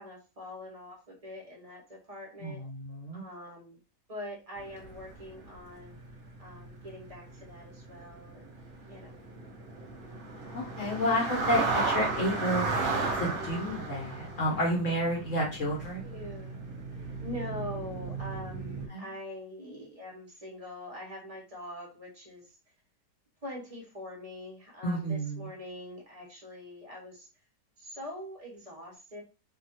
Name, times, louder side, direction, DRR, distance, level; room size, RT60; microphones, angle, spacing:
voice 1, 0.0-2.6 3.1-3.8 4.1-5.9 6.4-8.5 8.9-9.2 16.0-16.5 17.2-22.5 23.4-27.3 27.8-29.2, left 1 dB, 35° right, -3 dB, 0.5 m, -43 dB
voice 2, 2.4-3.2 10.5-12.7 13.1-16.0 18.9-19.0 24.8-25.5, equal, 55° left, -3 dB, 1.1 m, -30 dB
sound 1, 4.6-5.6 5.8-18.9, right 3 dB, 65° right, 1.1 m, -34 dB
2.8 x 2.4 x 2.7 m, 0.32 s
omnidirectional pair, 1.8 m